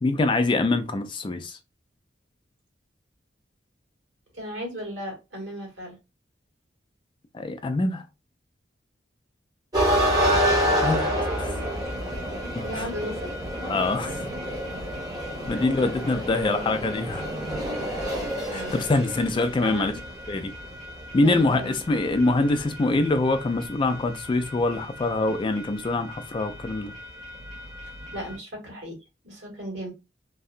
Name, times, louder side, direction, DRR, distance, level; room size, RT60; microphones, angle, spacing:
voice 1, 0.0-1.6 7.3-8.1 10.8-11.1 11.4-11.6 12.5-12.9 13.7-14.3 15.5-17.3 18.5-19.9 20.3-20.5 21.1-26.9, left 2 dB, 25° left, 0.3 m, -24 dB
voice 2, 4.3-6.0 9.9-10.1 12.6-13.3 15.5-16.6 18.4-18.8 19.6-20.0 21.2-21.7 28.1-29.0 29.2-29.9, equal, 80° right, 1.5 m, -36 dB
sound 1, 9.7-28.4, equal, 20° right, 1.0 m, -30 dB
2.7 x 2.2 x 2.4 m
head